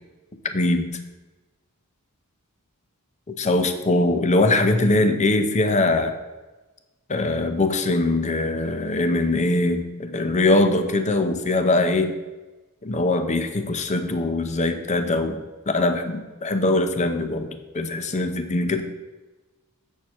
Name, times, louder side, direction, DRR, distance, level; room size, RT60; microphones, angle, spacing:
voice 1, 0.4-0.9 3.4-6.1 7.1-12.1 12.8-18.8, left 2 dB, 30° left, 8 dB, 0.7 m, -22 dB
8.3 x 6.5 x 4.4 m, 1.2 s
head